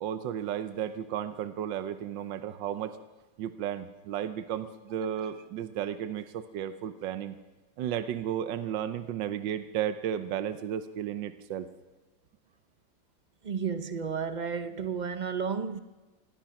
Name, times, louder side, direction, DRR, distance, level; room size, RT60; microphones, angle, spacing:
voice 1, 0.0-2.9 3.4-7.3 7.8-11.7, right 10 dB, 70° right, 10 dB, 1.5 m, -33 dB
voice 2, 13.4-15.8, right 6 dB, 55° right, 10 dB, 0.5 m, -32 dB
25.5 x 19.5 x 5.9 m, 1.2 s
omnidirectional pair, 2.1 m